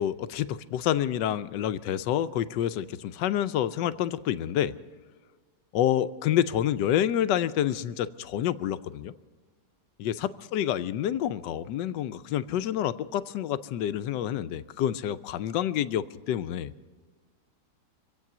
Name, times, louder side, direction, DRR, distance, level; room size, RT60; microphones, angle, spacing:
voice 1, 0.0-4.7 5.7-9.1 10.0-16.7, left 11 dB, 90° left, 13 dB, 1.3 m, -28 dB
25.5 x 8.5 x 6.0 m, 1.4 s
omnidirectional pair, 1.8 m